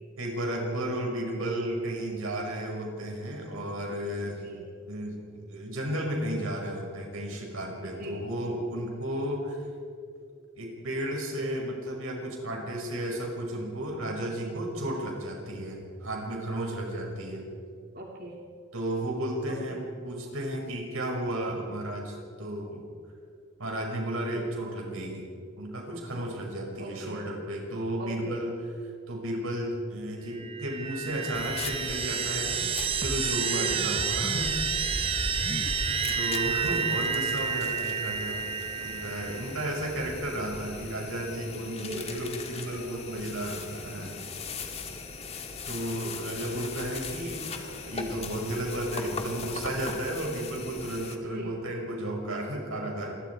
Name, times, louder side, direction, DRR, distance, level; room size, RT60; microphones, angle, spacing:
voice 1, 0.2-4.4 4.9-5.2 5.5-9.6 10.6-17.4 18.7-22.8 23.6-25.2 25.6-28.5 29.1-34.5 36.1-38.5 38.8-44.2 45.7-53.1, right 1 dB, 90° right, 0 dB, 6.0 m, -33 dB
voice 2, 4.3-4.7 7.8-8.3 17.9-18.4 19.7-19.9 26.8-27.3 28.0-28.4 33.4-33.8 35.5-36.2 41.6-42.1 51.2-51.5, right 1 dB, 45° right, -1 dB, 2.1 m, -41 dB
sound 1, 30.3-39.6, right 6 dB, 25° right, 0.6 m, -30 dB
sound 2, 31.3-51.2, left 4 dB, 30° left, 1.7 m, -40 dB
27.5 x 22.5 x 4.8 m, 2.3 s
head